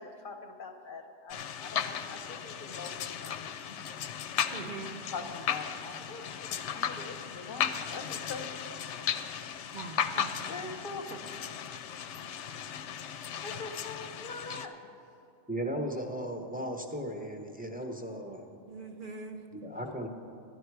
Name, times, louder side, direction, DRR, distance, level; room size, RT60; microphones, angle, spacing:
voice 1, 0.0-3.8 5.1-8.5 10.5-11.1 13.4-14.7, left 3 dB, 55° left, 5 dB, 0.8 m, -43 dB
sound 1, 1.3-14.7, left 8 dB, 90° left, 0.9 m, -36 dB
voice 2, 4.5-5.1 9.7-10.5 10.9-11.2 18.7-19.5, right 4 dB, 55° right, 5 dB, 0.8 m, -43 dB
voice 3, 15.5-18.4 19.5-20.1, equal, 10° right, 3 dB, 0.6 m, -36 dB
12.0 x 11.0 x 4.7 m, 2.8 s
omnidirectional pair, 1.2 m